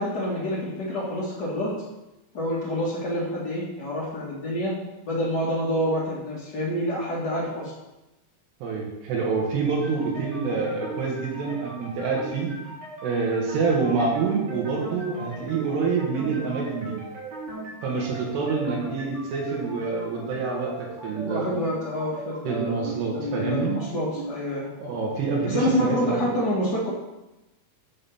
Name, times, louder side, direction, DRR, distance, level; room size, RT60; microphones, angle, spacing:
voice 1, 0.0-1.7 2.3-4.7 5.1-7.7 21.2-24.7 25.4-26.9, equal, 45° left, -7 dB, 1.3 m, -27 dB
voice 2, 8.6-12.5 13.0-17.0 17.8-21.5 22.4-23.8 24.8-26.2, right 4 dB, 90° right, -2 dB, 3.7 m, -27 dB
sound 1, 9.6-25.6, right 2 dB, 70° right, 4.4 m, -39 dB
7.7 x 5.9 x 7.1 m, 0.98 s
omnidirectional pair, 4.7 m